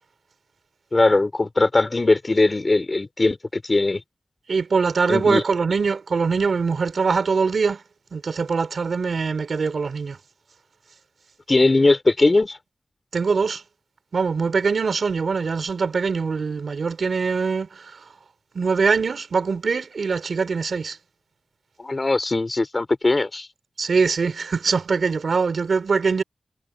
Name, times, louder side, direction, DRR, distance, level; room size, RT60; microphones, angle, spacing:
voice 1, 0.9-4.0 5.1-5.4 11.5-12.6 21.8-23.5, left 2 dB, 35° left, 3.2 m, -20 dB
voice 2, 4.5-7.8 8.1-10.2 13.1-13.6 14.1-18.0 18.5-21.0 23.8-26.2, right 5 dB, 80° right, 4.4 m, -23 dB
wide cardioid pair, 105°, 0 cm